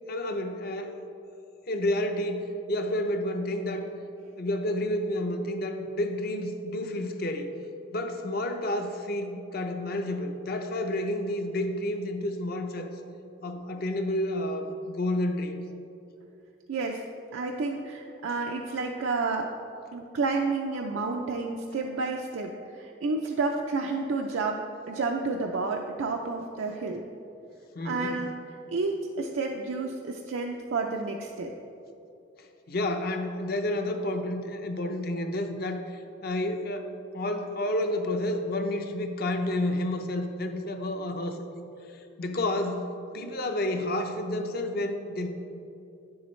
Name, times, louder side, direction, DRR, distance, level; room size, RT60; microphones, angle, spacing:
voice 1, 0.1-0.9 1.7-3.9 4.4-7.5 7.9-12.9 13.4-15.6 27.7-28.2 32.7-41.4 41.9-45.3, left 1 dB, 50° left, 5 dB, 0.6 m, -30 dB
voice 2, 16.7-17.0 17.3-19.5 19.9-27.0 27.8-28.3 28.7-31.5, right 3 dB, 90° right, 1 dB, 0.5 m, -30 dB
9.3 x 7.1 x 3.1 m, 2.7 s
head